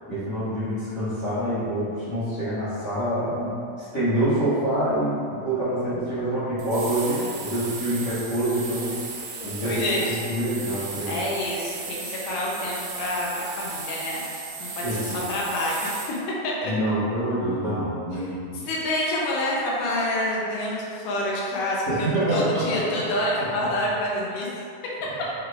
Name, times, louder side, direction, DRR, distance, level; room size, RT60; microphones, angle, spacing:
voice 1, 0.1-8.9 9.4-11.2 14.8-15.2 16.6-18.6 21.9-23.0 25.0-25.2, right 1 dB, 55° left, -17 dB, 1.0 m, -26 dB
sound 1, 6.6-16.2, right 4 dB, 80° right, 2.4 m, -36 dB
voice 2, 9.4-10.2 11.1-16.2 16.4-16.7 18.2-18.3 18.7-24.5, left 1 dB, 85° left, -5 dB, 1.9 m, -28 dB
6.1 x 3.2 x 2.3 m, 2.5 s
omnidirectional pair, 4.4 m